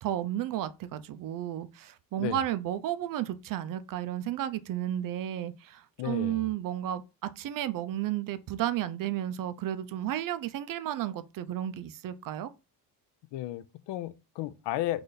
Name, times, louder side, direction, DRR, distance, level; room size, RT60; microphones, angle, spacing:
voice 1, 0.0-12.5, right 12 dB, 50° right, 0.5 m, -33 dB
voice 2, 6.0-6.5 13.3-15.0, left 14 dB, 75° left, 0.5 m, -34 dB
3.9 x 3.3 x 3.9 m
cardioid pair, 155°, 42 cm